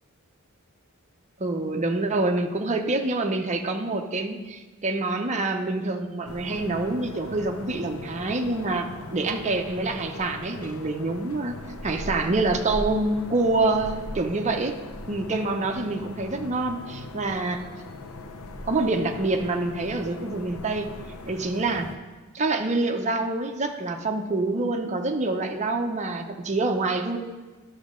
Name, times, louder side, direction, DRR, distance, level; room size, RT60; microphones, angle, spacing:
voice 1, 1.4-11.6 11.8-14.7 15.1-17.6 18.7-20.9 21.3-21.9 22.3-27.2, right 2 dB, 35° right, 3 dB, 0.7 m, -26 dB
sound 1, 6.2-22.0, left 2 dB, 75° left, 0.7 m, -39 dB
11.5 x 6.3 x 3.7 m, 1.3 s
head